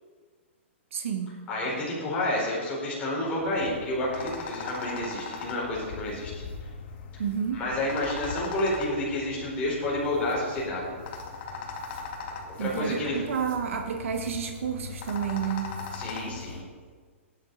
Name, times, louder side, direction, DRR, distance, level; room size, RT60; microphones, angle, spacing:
voice 1, 0.9-1.3 7.2-7.6 12.6-15.7, right 7 dB, 75° right, 4 dB, 1.5 m, -30 dB
voice 2, 1.5-6.3 7.5-10.9 12.5-13.2 15.9-16.6, left 1 dB, 15° left, -6 dB, 4.4 m, -30 dB
sound 1, 3.4-16.6, left 4 dB, 50° left, 2.0 m, -40 dB
16.5 x 10.5 x 4.1 m, 1.5 s
hypercardioid pair, 160°, 7 cm